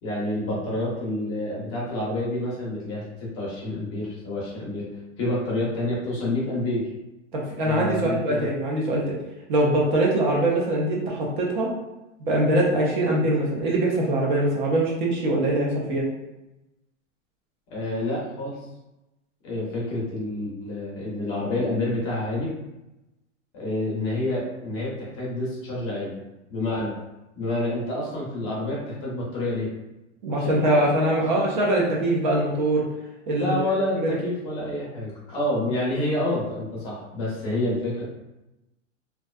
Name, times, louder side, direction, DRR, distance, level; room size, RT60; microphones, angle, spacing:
voice 1, 0.0-4.9 5.2-6.9 7.6-8.5 17.7-18.6 19.4-22.5 23.5-26.2 26.5-26.9 27.4-29.7 30.3-31.5 33.3-38.0, left 1 dB, 25° left, -5 dB, 0.6 m, -28 dB
voice 2, 7.3-9.2 9.5-11.7 12.3-16.1 30.2-32.8 33.3-33.7 34.0-34.1, right 1 dB, 40° right, -3 dB, 0.5 m, -23 dB
2.5 x 2.2 x 2.2 m, 0.97 s
supercardioid pair, 160°, 37 cm